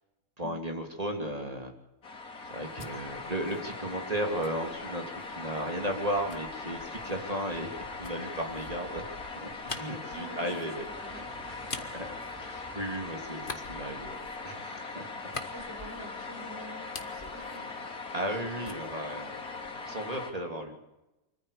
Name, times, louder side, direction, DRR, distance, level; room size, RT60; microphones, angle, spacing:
voice 1, 0.4-1.7 2.5-10.8 11.9-12.1 12.4-14.1 14.4-15.1 18.1-19.3 19.8-20.9, right 1 dB, 25° right, 3 dB, 3.2 m, -35 dB
sound 1, 2.0-20.3, left 3 dB, 70° left, 3.5 m, -40 dB
sound 2, 2.4-5.4 6.3-13.0 13.4-16.4 16.7-18.4 18.6-20.0, left 3 dB, 35° left, 1.7 m, -46 dB
voice 2, 10.1-11.8 13.8-14.2 15.3-17.7, right 1 dB, 45° right, 0 dB, 5.8 m, -47 dB
sound 3, 10.9-14.8, right 2 dB, 10° right, 5.2 m, -53 dB
25.0 x 14.5 x 8.5 m, 0.98 s
omnidirectional pair, 1.6 m